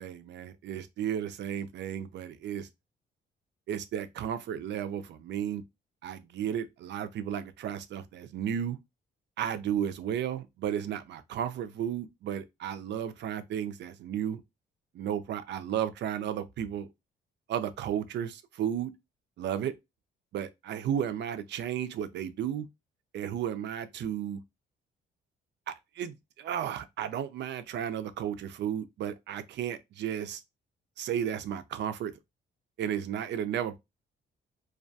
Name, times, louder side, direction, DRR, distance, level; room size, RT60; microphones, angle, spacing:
voice 1, 0.0-2.7 3.7-5.6 6.0-8.8 9.4-14.4 14.9-16.9 17.5-18.9 19.4-19.7 20.3-22.7 23.1-24.4 25.7-30.4 31.0-32.1 32.8-33.8, right 9 dB, 65° right, 0.4 m, -33 dB
2.3 x 2.2 x 2.6 m
cardioid pair, 90°, 20 cm